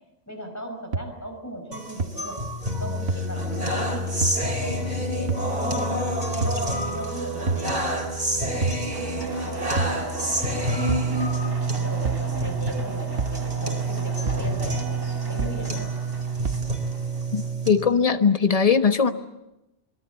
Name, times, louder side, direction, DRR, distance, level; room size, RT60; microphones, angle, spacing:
voice 1, 0.3-2.4 2.8-7.7 9.1-11.1 11.8-14.8 15.3-16.0, equal, 15° left, 4 dB, 5.5 m, -37 dB
sound 1, 0.9-1.0 2.0-2.1 3.1-3.2 4.2-4.4 5.3-5.5 6.4-6.6 7.5-7.7 8.6-8.8 9.8-10.0 10.9-11.1 12.1-12.3 13.2-13.4 14.3-14.5 15.4-15.6 16.5-16.7, right 4 dB, 90° right, 1.5 m, -26 dB
sound 2, 1.7-17.7, right 2 dB, 40° right, 4.2 m, -27 dB
sound 3, 8.9-17.5, right 2 dB, 20° right, 1.9 m, -39 dB
voice 2, 17.3-19.1, left 6 dB, 35° left, 8 dB, 1.3 m, -20 dB
26.5 x 22.0 x 8.3 m, 0.94 s
omnidirectional pair, 1.1 m